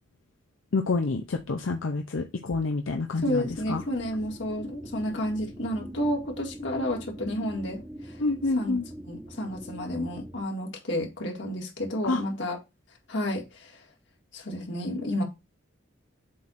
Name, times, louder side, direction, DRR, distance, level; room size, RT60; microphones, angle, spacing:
voice 1, 0.7-3.8 8.2-8.8 12.0-12.2, left 3 dB, 90° left, 0.6 m, -28 dB
voice 2, 3.2-8.2 8.5-8.8 9.1-12.6 13.1-13.8 14.3-15.2, left 1 dB, 65° left, 1.9 m, -31 dB
sound 1, 3.2-10.4, right 1 dB, 5° right, 0.9 m, -43 dB
7.6 x 2.6 x 5.5 m
head